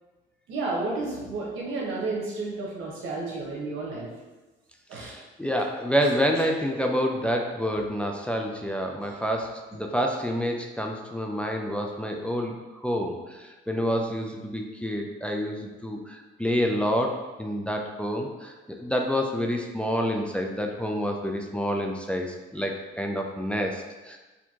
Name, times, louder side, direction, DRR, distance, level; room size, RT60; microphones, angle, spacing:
voice 1, 0.5-4.1 4.9-5.2, right 3 dB, 90° right, -4 dB, 1.1 m, -31 dB
voice 2, 5.0-12.5 12.8-24.2, equal, 5° left, 1 dB, 0.4 m, -28 dB
4.3 x 2.7 x 2.8 m, 1.2 s
cardioid pair, 90°, 20 cm